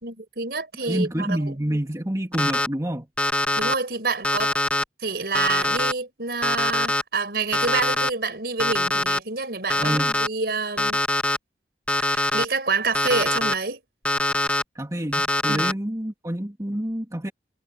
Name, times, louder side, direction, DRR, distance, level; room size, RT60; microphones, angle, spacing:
voice 1, 0.0-1.5 3.6-4.5 5.0-9.9 10.2-11.0 12.1-13.8 15.5-15.6, right 4 dB, 60° right, 5.1 m, -27 dB
voice 2, 0.9-3.1 9.8-10.1 14.7-17.3, right 1 dB, 20° right, 2.3 m, -27 dB
Alarm, 2.3-2.7 3.2-3.7 4.2-4.8 5.3-5.9 6.4-7.0 7.5-8.1 8.6-9.2 9.7-10.3 10.8-11.4 11.9-12.4 12.9-13.5 14.0-14.6 15.1-15.7, left 1 dB, 10° left, 1.6 m, -23 dB
head